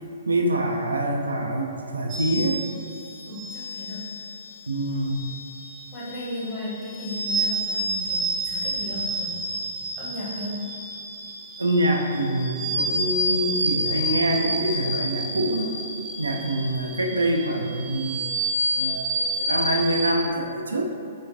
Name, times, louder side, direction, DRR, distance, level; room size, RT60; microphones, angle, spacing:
voice 1, 0.3-2.6 4.7-5.3 11.6-15.7 16.2-18.2 18.7-19.1 19.3-20.9, right 1 dB, 75° right, 1 dB, 0.3 m, -25 dB
sound 1, 2.1-20.1, right 1 dB, 20° right, 0.6 m, -29 dB
voice 2, 3.3-4.0 5.9-9.3 10.0-10.6, left 1 dB, 25° left, -9 dB, 1.2 m, -35 dB
4.9 x 2.2 x 2.7 m, 2.4 s
figure-of-eight pair, 115°, 0 cm